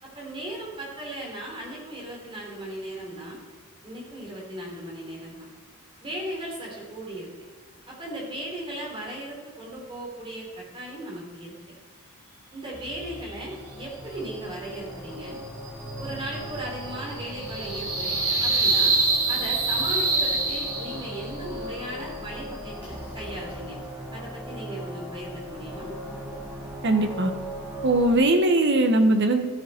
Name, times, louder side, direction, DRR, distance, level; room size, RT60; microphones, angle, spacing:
voice 1, 0.0-3.4 3.8-5.5 6.0-7.3 7.9-11.5 12.5-15.4 16.0-18.9 19.3-23.8 24.1-25.9, right 1 dB, 25° right, -3 dB, 3.9 m, -37 dB
sound 1, 12.7-28.1, equal, 5° right, 3.7 m, -39 dB
sound 2, 15.3-21.3, right 3 dB, 70° right, 3.0 m, -26 dB
voice 2, 26.8-27.3 27.8-29.4, right 2 dB, 50° right, 5 dB, 1.3 m, -20 dB
14.0 x 11.0 x 4.5 m, 1.4 s
head